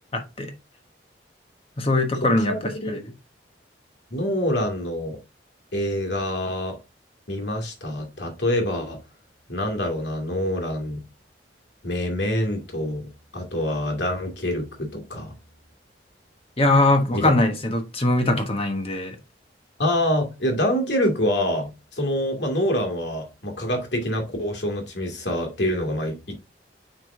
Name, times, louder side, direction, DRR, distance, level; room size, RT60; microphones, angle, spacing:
voice 1, 0.1-0.5 1.8-3.0 16.6-19.2, left 2 dB, 30° left, 1.2 m, -21 dB
voice 2, 4.1-5.2 5.7-6.8 7.3-9.0 9.5-11.0 11.8-13.0 13.3-15.3 17.1-17.3 19.8-26.3, left 1 dB, 70° left, 2.5 m, -26 dB
8.4 x 4.9 x 2.7 m
head